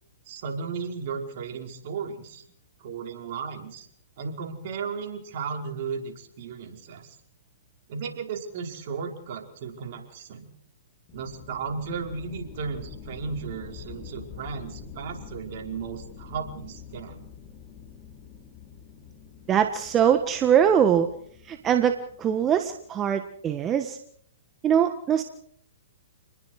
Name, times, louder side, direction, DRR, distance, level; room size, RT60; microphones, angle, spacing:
voice 1, 0.3-2.4 2.8-3.9 4.2-7.2 7.9-10.5 11.1-17.2, right 5 dB, 50° right, 3 dB, 5.3 m, -35 dB
sound 1, 11.1-23.4, left 7 dB, 30° left, 5.7 m, -46 dB
voice 2, 19.5-21.1 21.4-24.0 24.6-25.2, right 8 dB, 20° right, 7 dB, 1.6 m, -22 dB
29.5 x 20.5 x 5.0 m, 0.65 s
hypercardioid pair, 130°, 0 cm